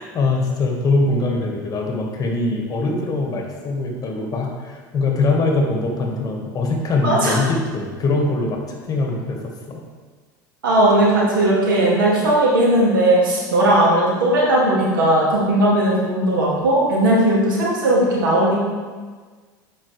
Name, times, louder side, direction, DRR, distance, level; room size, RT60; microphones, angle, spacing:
voice 1, 0.0-9.8, left 3 dB, 35° left, 1 dB, 1.6 m, -22 dB
voice 2, 7.0-7.4 10.6-18.6, right 1 dB, 85° right, -5 dB, 2.2 m, -17 dB
8.4 x 5.3 x 3.3 m, 1.5 s
hypercardioid pair, 85°, 11 cm